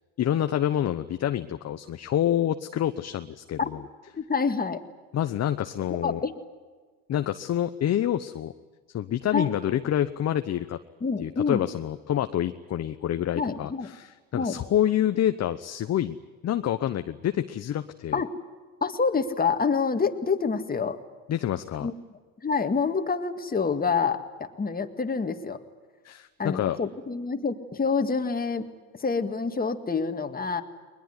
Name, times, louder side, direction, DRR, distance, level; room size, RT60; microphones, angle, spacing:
voice 1, 0.2-3.8 5.1-6.2 7.1-8.5 8.9-10.8 11.2-16.2 16.4-18.2 21.3-21.9 26.0-26.8, left 11 dB, 40° left, 9 dB, 0.9 m, -27 dB
voice 2, 4.1-4.8 6.0-6.4 9.3-9.5 11.0-11.6 13.4-13.9 14.3-14.6 18.1-18.3 18.8-21.0 21.8-21.9 22.4-25.6 26.4-28.7 29.0-30.6, left 5 dB, 20° left, 7 dB, 2.0 m, -27 dB
21.0 x 21.0 x 9.7 m, 1.4 s
supercardioid pair, 95°, 42 cm